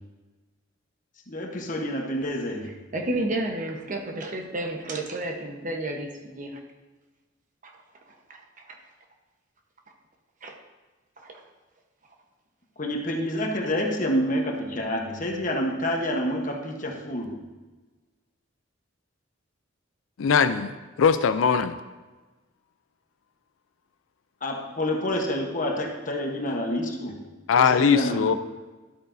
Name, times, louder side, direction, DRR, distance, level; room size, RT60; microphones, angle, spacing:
voice 1, 1.3-2.8 12.8-17.5 24.4-27.2 27.6-28.3, left 1 dB, 40° left, 2 dB, 1.1 m, -28 dB
voice 2, 2.9-6.6 7.6-7.7 10.4-10.5 11.2-11.3, right 1 dB, 40° right, 2 dB, 1.0 m, -31 dB
voice 3, 20.2-20.7 21.0-21.7 27.5-28.3, left 6 dB, 80° left, 11 dB, 0.4 m, -20 dB
12.0 x 8.1 x 2.7 m, 1.2 s
head